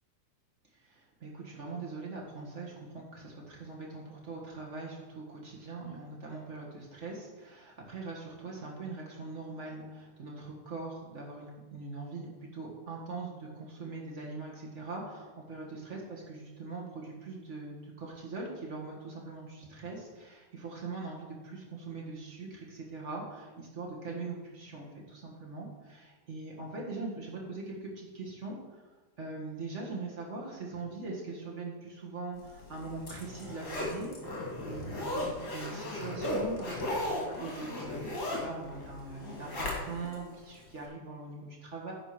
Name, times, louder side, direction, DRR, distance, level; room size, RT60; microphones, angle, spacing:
voice 1, 0.8-28.8 29.2-41.9, right 3 dB, 35° right, -2 dB, 1.2 m, -42 dB
Zipper (clothing), 32.6-40.2 40.6-40.7, left 1 dB, 35° left, 2.2 m, -36 dB
10.0 x 5.0 x 5.9 m, 1.2 s
omnidirectional pair, 3.5 m